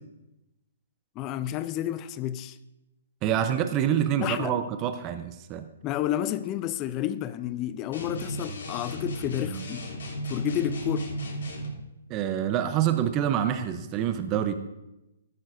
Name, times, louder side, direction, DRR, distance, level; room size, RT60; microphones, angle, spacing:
voice 1, 1.2-2.6 4.2-4.5 5.8-9.9 10.3-11.1, left 12 dB, 30° left, 0.4 m, -30 dB
voice 2, 3.2-5.7 12.1-14.5, right 10 dB, 30° right, 0.7 m, -26 dB
sound 1, 7.9-11.8, right 1 dB, 70° left, 3.2 m, -34 dB
13.0 x 12.0 x 2.6 m
figure-of-eight pair, 130°, 0 cm